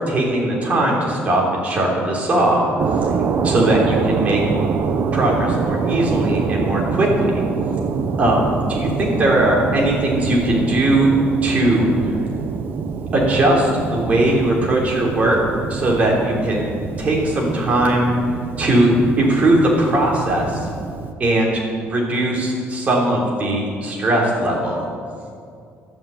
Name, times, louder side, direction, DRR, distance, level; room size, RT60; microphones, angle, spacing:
voice 1, 0.1-2.7 3.4-4.4 5.1-7.3 8.2-11.1 11.4-11.9 13.1-15.4 15.7-16.7 17.0-18.1 18.6-18.9 19.2-20.7 21.2-24.8, right 1 dB, 30° right, -2 dB, 3.5 m, -19 dB
sound 1, 2.8-21.1, right 5 dB, 45° right, 0.9 m, -25 dB
12.5 x 9.3 x 8.4 m, 2.3 s
cardioid pair, 150°, 5 cm